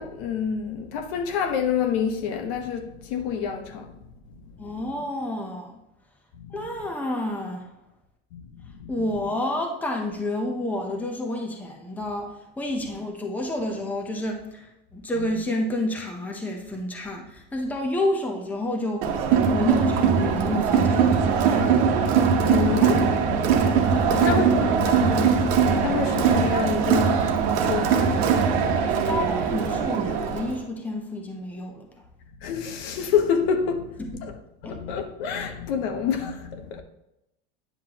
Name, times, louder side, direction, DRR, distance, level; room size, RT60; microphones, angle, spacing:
voice 1, 0.0-4.0 4.6-4.9 6.3-6.7 8.3-8.4 8.7-9.2 15.1-15.3 21.8-29.2 32.4-34.4 34.6-36.8, left 7 dB, 65° left, 1.2 m, -29 dB
voice 2, 4.6-5.8 6.5-7.7 8.9-19.1 19.5-21.3 24.1-24.4 28.8-31.9 34.0-34.1 34.6-34.8, left 1 dB, 5° left, 0.8 m, -29 dB
Crowd, 19.0-30.6, right 6 dB, 60° right, 1.2 m, -21 dB
9.4 x 5.9 x 3.0 m
supercardioid pair, 140°, 33 cm